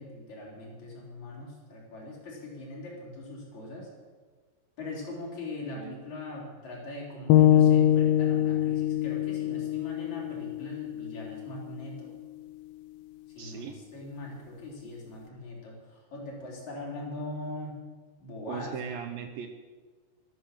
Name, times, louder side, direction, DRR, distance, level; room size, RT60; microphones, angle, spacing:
voice 1, 0.0-3.9 4.8-12.1 13.3-17.8 18.2-18.7, left 2 dB, 45° left, -4 dB, 4.7 m, -41 dB
sound 1, 7.3-11.4, left 11 dB, 90° left, 2.1 m, -23 dB
voice 2, 13.4-13.8 18.5-19.5, right 7 dB, 75° right, 6 dB, 2.2 m, -38 dB
13.0 x 13.0 x 6.6 m, 1.4 s
omnidirectional pair, 4.9 m